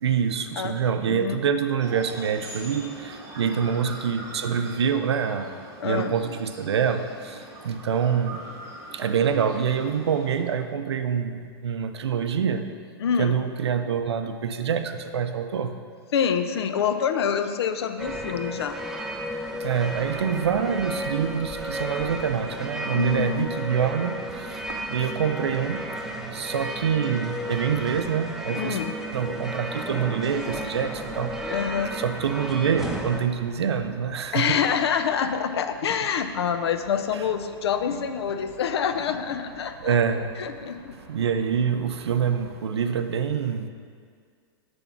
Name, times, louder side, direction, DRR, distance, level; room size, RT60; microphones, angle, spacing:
voice 1, 0.0-5.5 5.8-8.4 8.9-12.7 13.2-15.7 19.6-28.8 29.1-31.6 31.9-34.6 37.1-37.2 39.8-40.3 41.1-43.7, right 7 dB, 90° right, 8 dB, 0.5 m, -26 dB
voice 2, 0.6-1.4 3.4-3.6 5.8-6.1 13.0-13.4 16.1-18.8 22.9-23.5 28.6-28.9 31.5-32.0 34.3-40.0 40.4-40.9, left 7 dB, 75° left, 9 dB, 0.5 m, -26 dB
sound 1, 1.8-10.5, right 2 dB, 25° right, 1.8 m, -42 dB
sound 2, 18.0-33.2, equal, 5° right, 0.5 m, -33 dB
sound 3, 29.1-42.6, right 4 dB, 55° right, 1.0 m, -49 dB
6.9 x 3.6 x 5.7 m, 2.1 s
hypercardioid pair, 125°, 13 cm